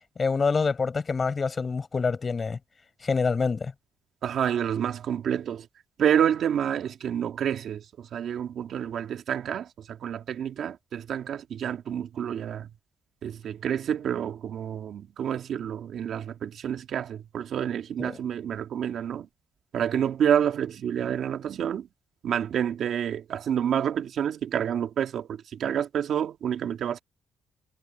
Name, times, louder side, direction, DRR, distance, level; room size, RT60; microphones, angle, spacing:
voice 1, 0.2-2.6 3.0-3.7 18.0-18.2, left 4 dB, 35° left, 7.0 m, -26 dB
voice 2, 4.2-5.7 6.0-12.7 13.2-19.3 19.7-21.9 22.2-27.0, right 9 dB, 65° right, 2.2 m, -28 dB
cardioid pair, 90°, 0 cm